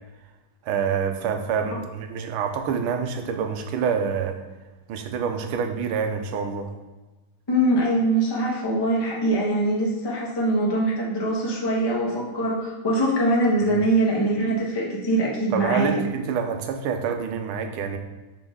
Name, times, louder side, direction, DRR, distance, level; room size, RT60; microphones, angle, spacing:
voice 1, 0.6-4.4 4.9-6.7 13.6-13.8 15.5-18.0, right 6 dB, 80° right, 6 dB, 1.5 m, -27 dB
voice 2, 7.5-16.0, right 1 dB, 15° left, -4 dB, 0.9 m, -23 dB
5.9 x 4.8 x 3.7 m, 1.2 s
omnidirectional pair, 2.4 m